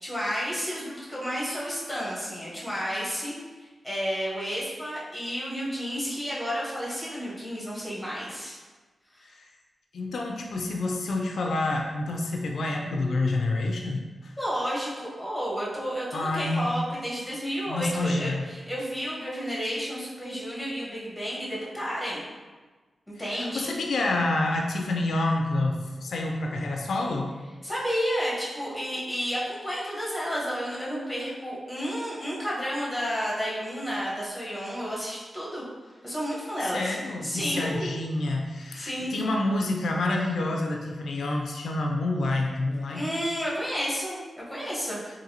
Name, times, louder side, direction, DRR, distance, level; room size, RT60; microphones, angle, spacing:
voice 1, 0.0-3.3 3.8-8.6 9.1-9.2 14.4-22.3 23.1-23.7 27.6-35.6 36.0-37.0 37.2-37.9 38.7-39.2 42.9-45.0, equal, ahead, -7 dB, 1.4 m, -31 dB
voice 2, 9.9-14.3 16.1-16.7 17.7-18.5 23.3-27.3 36.7-43.1, left 2 dB, 80° left, 1 dB, 0.3 m, -28 dB
3.9 x 2.6 x 2.8 m, 1.3 s
cardioid pair, 80°, 0 cm